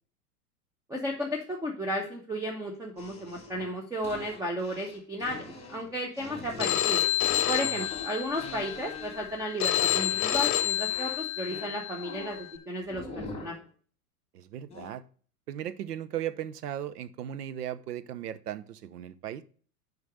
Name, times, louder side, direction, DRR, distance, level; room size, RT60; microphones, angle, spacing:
voice 1, 0.9-7.0 7.5-13.6, equal, 5° right, 1 dB, 1.1 m, -34 dB
sound 1, 3.0-9.4 9.7-10.6 10.9-12.5 12.9-13.6 14.7-14.9, left 2 dB, 15° left, 2.8 m, -44 dB
Telephone, 6.6-12.6, left 12 dB, 40° left, 1.1 m, -29 dB
voice 2, 14.3-15.0 15.5-19.4, right 11 dB, 75° right, 15 dB, 0.8 m, -37 dB
6.3 x 5.2 x 6.2 m, 0.43 s
hypercardioid pair, 105°, 46 cm